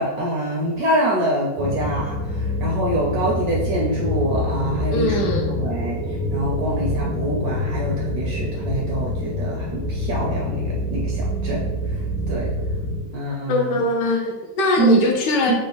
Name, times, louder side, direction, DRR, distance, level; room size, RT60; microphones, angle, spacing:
voice 1, 0.0-5.3 5.6-6.0 6.3-11.6 12.3-12.5 13.1-13.8 14.8-15.0 15.5-15.6, right 2 dB, 70° right, -2 dB, 0.9 m, -24 dB
sound 1, 1.6-13.0, left 1 dB, 25° left, 0.3 m, -26 dB
voice 2, 4.9-5.5 13.5-15.5, left 2 dB, 75° left, 1 dB, 1.1 m, -21 dB
3.9 x 2.1 x 3.8 m, 1.1 s
omnidirectional pair, 2.0 m